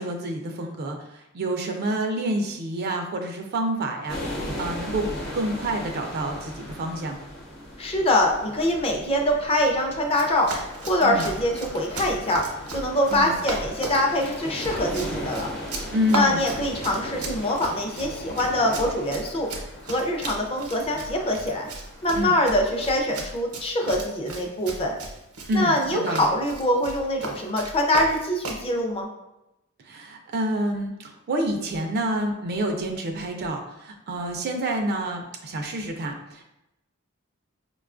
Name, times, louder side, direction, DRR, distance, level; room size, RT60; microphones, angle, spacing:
voice 1, 0.0-5.1 5.3-7.2 11.0-11.3 13.1-13.3 15.9-16.5 22.1-22.4 25.5-26.3 29.8-36.4, right 1 dB, 45° right, 3 dB, 0.3 m, -28 dB
sound 1, 4.1-23.0, equal, 50° left, 0.9 m, -38 dB
voice 2, 7.8-10.5 10.8-12.4 12.7-15.5 16.1-19.5 19.9-21.7 22.0-24.9 25.5-29.1, left 1 dB, 25° left, 2 dB, 0.5 m, -24 dB
Run, 10.1-28.7, right 2 dB, 85° right, 0.7 m, -36 dB
4.8 x 2.2 x 2.4 m, 0.92 s
head